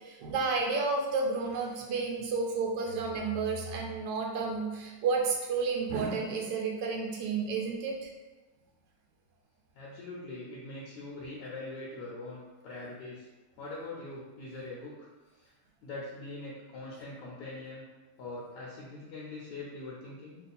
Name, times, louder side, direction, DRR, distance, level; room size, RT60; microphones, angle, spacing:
voice 1, 0.0-8.1, right 4 dB, 80° right, -1 dB, 1.2 m, -31 dB
voice 2, 9.7-13.3 13.6-15.5 15.8-17.8 18.2-20.4, left 2 dB, 75° left, -5 dB, 1.2 m, -42 dB
3.1 x 2.2 x 4.1 m, 1.2 s
omnidirectional pair, 1.8 m